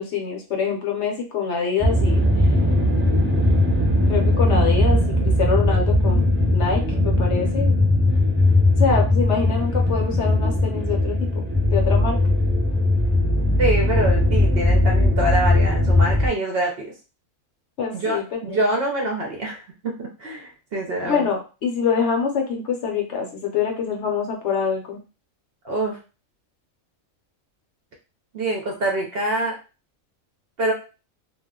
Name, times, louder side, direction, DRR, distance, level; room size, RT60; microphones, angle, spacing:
voice 1, 0.0-2.5 4.1-5.0 5.4-7.7 8.8-11.4 11.7-12.2 17.8-18.6 21.0-25.0, left 6 dB, 65° left, 1 dB, 0.9 m, -25 dB
sound 1, 1.8-16.3, left 1 dB, 15° right, 0.4 m, -19 dB
voice 2, 13.6-16.9 17.9-21.3 25.6-26.0 28.3-29.6 30.6-30.7, right 1 dB, 60° right, 0 dB, 0.7 m, -25 dB
2.3 x 2.1 x 3.6 m, 0.33 s
omnidirectional pair, 1.4 m